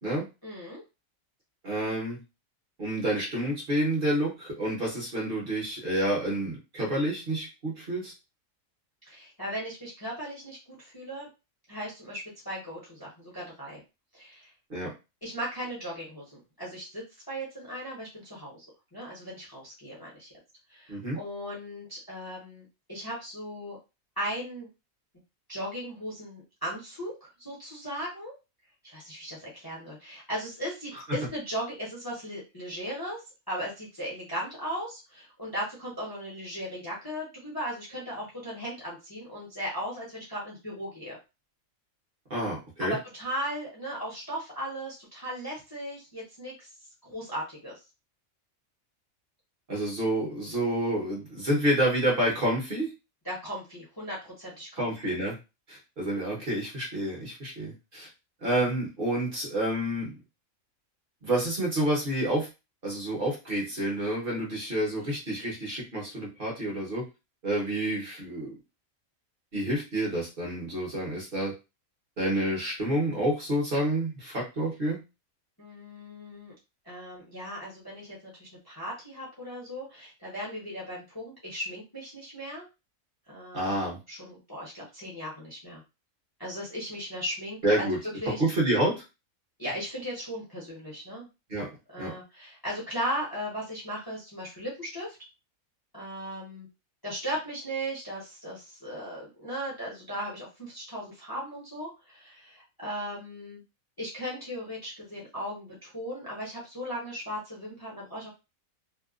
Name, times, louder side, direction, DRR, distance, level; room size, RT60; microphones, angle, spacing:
voice 1, 0.4-0.8 9.0-11.3 11.7-13.8 14.1-14.5 15.2-18.6 18.9-20.3 20.7-23.8 24.2-24.7 25.5-28.4 28.8-33.2 33.5-41.2 42.8-46.7 47.0-47.8 53.2-54.9 75.6-76.5 76.8-82.7 83.3-83.8 84.1-85.8 86.4-87.9 88.2-88.4 89.6-91.3 91.9-95.2 95.9-96.7 97.0-103.6 104.0-108.3, equal, 20° left, -5 dB, 0.7 m, -37 dB
voice 2, 1.6-2.2 2.8-8.1 14.7-14.9 20.9-21.2 42.3-42.9 49.7-52.9 54.8-55.4 55.7-58.1 58.4-60.1 61.2-62.5 62.8-67.1 67.4-68.5 69.5-71.5 72.2-75.0 83.5-84.0 87.6-88.0 88.3-89.0 91.5-91.7 92.0-92.1, right 1 dB, 45° right, -3 dB, 1.0 m, -29 dB
2.8 x 2.1 x 2.4 m, 0.27 s
omnidirectional pair, 1.5 m